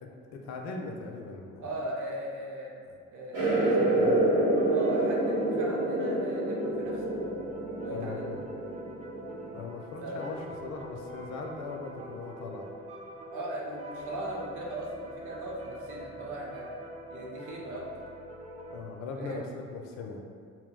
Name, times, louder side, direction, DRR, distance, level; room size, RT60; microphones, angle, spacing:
voice 1, 0.0-1.7 2.9-3.0 3.4-4.4 7.9-8.4 9.5-12.7 18.7-20.2, left 4 dB, 45° left, 2 dB, 0.4 m, -40 dB
voice 2, 1.6-2.8 3.1-3.9 4.7-7.1 7.7-8.4 10.0-10.3 13.3-16.7 17.1-18.0 19.1-19.5, right 1 dB, 50° right, -2 dB, 0.7 m, -38 dB
sound 1, 3.3-9.5, right 1 dB, 70° right, 1.0 m, -28 dB
sound 2, 4.5-18.8, right 1 dB, 20° right, 0.4 m, -45 dB
2.2 x 2.0 x 3.6 m, 2.2 s
figure-of-eight pair, 50°, 40 cm